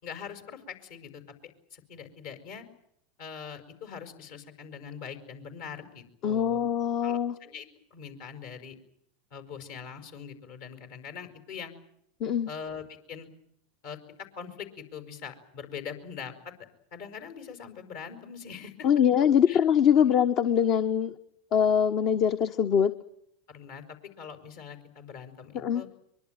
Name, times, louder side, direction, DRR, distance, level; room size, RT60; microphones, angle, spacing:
voice 1, 0.0-2.7 3.2-6.7 7.0-8.8 9.3-11.7 12.4-13.3 13.8-16.6 16.9-18.9 19.5-19.6 23.5-25.9, left 7 dB, 65° left, 7 dB, 5.8 m, -42 dB
voice 2, 6.2-7.3 12.2-12.5 18.8-21.1 21.5-22.9 25.5-25.8, left 8 dB, 45° left, 9 dB, 1.3 m, -23 dB
24.0 x 23.0 x 9.1 m, 0.73 s
hypercardioid pair, 85°, 0 cm